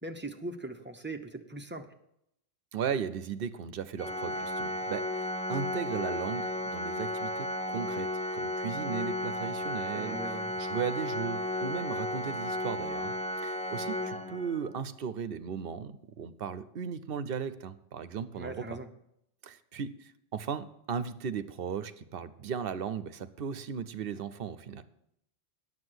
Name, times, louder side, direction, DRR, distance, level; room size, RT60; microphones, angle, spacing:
voice 1, 0.0-1.9 9.9-10.6 18.4-18.9, right 2 dB, 10° right, 5 dB, 0.9 m, -40 dB
voice 2, 2.7-10.2 10.6-13.1 13.4-18.6 19.4-24.8, right 7 dB, 65° right, 14 dB, 0.9 m, -36 dB
Organ, 4.0-14.8, left 1 dB, 10° left, 0.3 m, -34 dB
9.7 x 7.6 x 7.9 m, 0.77 s
omnidirectional pair, 1.1 m